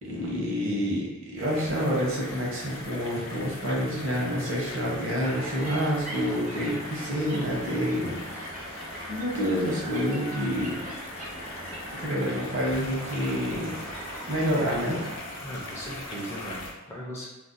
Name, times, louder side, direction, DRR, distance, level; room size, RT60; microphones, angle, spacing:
voice 1, 0.0-10.8 11.9-13.8 14.3-15.0, equal, 55° right, -4 dB, 0.9 m, -28 dB
sound 1, 1.4-16.7, left 1 dB, 60° left, 0.6 m, -40 dB
sound 2, 5.2-15.2, right 1 dB, 35° right, 0.5 m, -41 dB
voice 2, 15.4-17.3, equal, 10° left, -4 dB, 0.4 m, -38 dB
2.5 x 2.1 x 3.8 m, 1.1 s
head